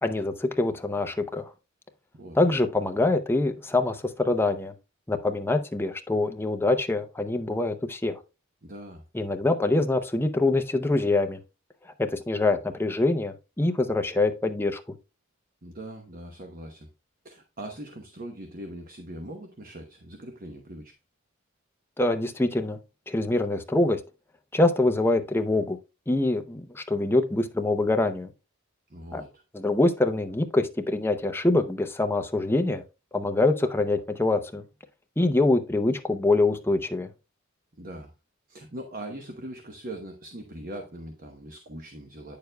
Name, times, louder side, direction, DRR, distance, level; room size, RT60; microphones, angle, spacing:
voice 1, 0.0-1.5 2.3-4.7 5.1-8.2 9.1-11.4 12.0-14.8 22.0-22.8 23.1-24.0 24.5-25.8 26.1-28.3 29.1-29.2 29.5-32.8 33.1-34.6 35.2-37.1, left 2 dB, 10° left, 6 dB, 0.6 m, -24 dB
voice 2, 8.6-9.0 15.6-16.9 17.2-20.9 28.9-29.4 37.8-38.1 38.5-42.4, right 1 dB, 45° right, 4 dB, 0.9 m, -41 dB
9.4 x 6.7 x 2.3 m, 0.28 s
head